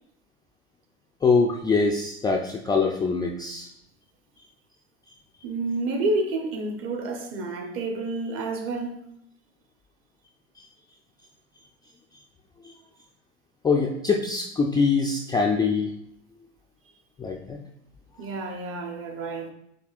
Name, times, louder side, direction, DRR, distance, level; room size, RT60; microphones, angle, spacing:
voice 1, 1.2-3.7 13.6-15.9 17.2-17.6, left 4 dB, 10° left, 0.3 m, -23 dB
voice 2, 5.4-9.0 18.2-19.5, right 2 dB, 40° right, 1.0 m, -29 dB
7.9 x 2.7 x 2.5 m
hypercardioid pair, 85°, 34 cm